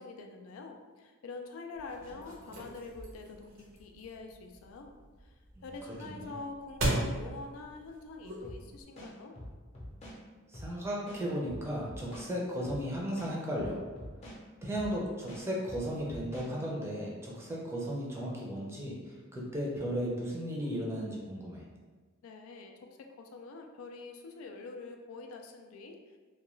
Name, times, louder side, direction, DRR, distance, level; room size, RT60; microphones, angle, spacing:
voice 1, 0.0-4.9 5.2-5.3 5.6-9.3 22.2-26.2, left 3 dB, 85° left, 3 dB, 0.3 m, -46 dB
sound 1, 1.8-8.8, right 1 dB, 65° right, 0.6 m, -38 dB
sound 2, 8.4-8.6 9.0-10.2 10.5-10.7 11.1-12.3 12.6-12.8 13.2-14.4 14.7-14.9 15.3-16.5, equal, 30° left, 0.6 m, -45 dB
voice 2, 10.5-13.8 14.6-19.0 19.3-21.6, equal, 15° right, -4 dB, 0.5 m, -35 dB
2.3 x 2.2 x 3.0 m, 1.3 s
head